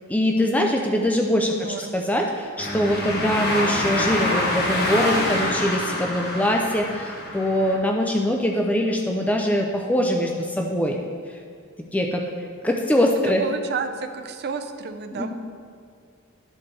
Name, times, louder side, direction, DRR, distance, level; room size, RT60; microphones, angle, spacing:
voice 1, 0.1-11.0 11.3-11.4 11.9-12.2 12.6-13.4 15.1-15.3, equal, 5° left, 1 dB, 0.4 m, -23 dB
voice 2, 1.5-2.0 13.4-15.3, right 5 dB, 50° right, 8 dB, 0.5 m, -31 dB
sound 1, 2.6-7.8, left 1 dB, 50° left, 1.3 m, -26 dB
12.5 x 4.2 x 3.2 m, 2.2 s
head